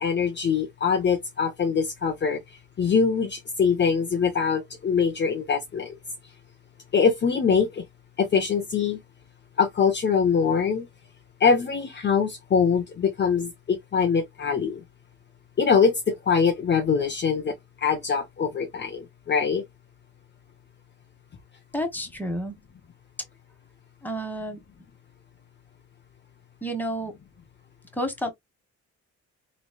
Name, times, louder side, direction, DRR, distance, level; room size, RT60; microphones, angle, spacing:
voice 1, 0.0-2.4 2.8-5.9 6.9-7.8 8.2-9.0 9.6-10.9 11.4-14.8 15.6-17.5 17.8-19.6, left 6 dB, 35° left, 0.8 m, -23 dB
voice 2, 21.7-22.6 24.0-24.6 26.6-27.1 27.9-28.3, equal, 5° left, 1.4 m, -30 dB
3.9 x 3.2 x 2.3 m
cardioid pair, 90°, 30 cm